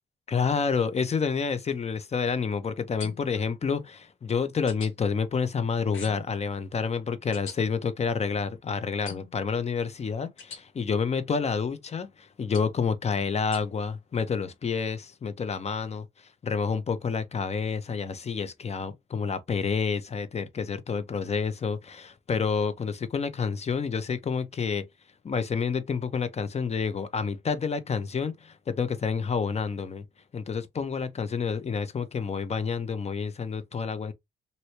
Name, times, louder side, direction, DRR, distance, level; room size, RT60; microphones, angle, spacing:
voice 1, 0.3-16.0 16.4-24.8 25.2-30.0 30.3-34.1, left 5 dB, 35° left, 0.7 m, -29 dB
sound 1, 3.0-3.4 4.7-4.9 5.9-6.3 7.3-7.6 9.1-9.4 10.4-10.6 12.5-12.8 13.5-13.6, left 6 dB, 80° left, 1.2 m, -42 dB
3.0 x 2.7 x 2.8 m
cardioid pair, 90°, 20 cm